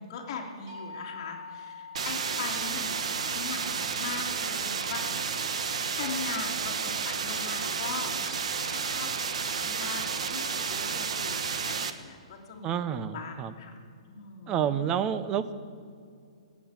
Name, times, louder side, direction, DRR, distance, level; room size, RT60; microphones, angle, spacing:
voice 1, 0.0-8.1 8.7-13.8 14.1-14.8, left 5 dB, 35° left, 1 dB, 2.4 m, -40 dB
sound 1, 0.7-6.6, left 4 dB, 40° right, 4.4 m, -47 dB
sound 2, 1.9-11.9, right 6 dB, 70° right, 1.2 m, -31 dB
voice 2, 12.6-13.5 14.5-15.5, right 9 dB, 15° right, 13 dB, 0.6 m, -29 dB
19.0 x 8.5 x 8.9 m, 2.3 s
hypercardioid pair, 165°, 4 cm